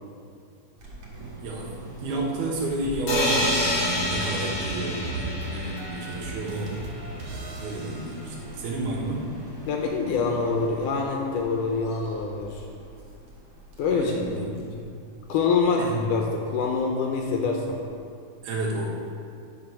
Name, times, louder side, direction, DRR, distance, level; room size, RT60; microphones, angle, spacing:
sound 1, 0.8-18.0, right 1 dB, 45° right, 2.4 m, -44 dB
voice 1, 1.4-1.7 2.0-6.7 7.6-9.2 13.9-14.5 15.8-16.0 18.4-18.9, right 2 dB, 90° right, -3 dB, 3.3 m, -31 dB
sound 2, 3.1-6.9, left 1 dB, 50° left, 1.5 m, -28 dB
sound 3, 3.3-9.1, right 2 dB, 65° right, 1.9 m, -37 dB
voice 2, 9.7-12.6 13.8-15.0 15.3-15.8 16.1-17.8, left 4 dB, 75° left, 1 dB, 1.9 m, -26 dB
10.0 x 4.8 x 6.0 m, 2.3 s
omnidirectional pair, 4.3 m